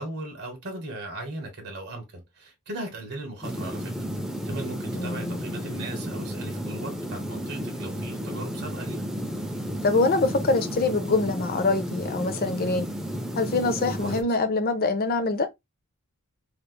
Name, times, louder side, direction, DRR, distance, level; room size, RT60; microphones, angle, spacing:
voice 1, 0.0-3.9 4.4-9.0 14.0-14.2, right 2 dB, 50° right, 1.3 m, -37 dB
sound 1, 3.4-14.2, equal, ahead, 0.5 m, -33 dB
voice 2, 4.9-5.4 9.8-12.9 13.4-15.5, left 3 dB, 45° left, 0.6 m, -24 dB
3.3 x 3.2 x 2.2 m
head